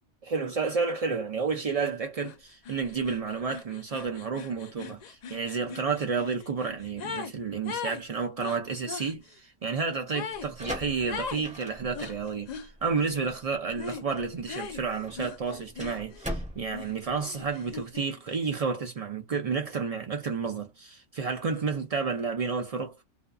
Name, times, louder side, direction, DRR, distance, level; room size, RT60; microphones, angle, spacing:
voice 1, 0.2-23.0, right 5 dB, 65° right, 0.3 m, -31 dB
sound 1, 2.2-2.4 2.6-7.3 7.6-9.1 10.1-10.5 11.1-11.5 11.9-12.7 13.8-14.1 14.5-16.3 16.7-18.1, left 6 dB, 80° left, 0.3 m, -40 dB
sound 2, 10.4-17.9, equal, 10° right, 0.6 m, -41 dB
2.5 x 2.3 x 2.4 m
omnidirectional pair, 1.3 m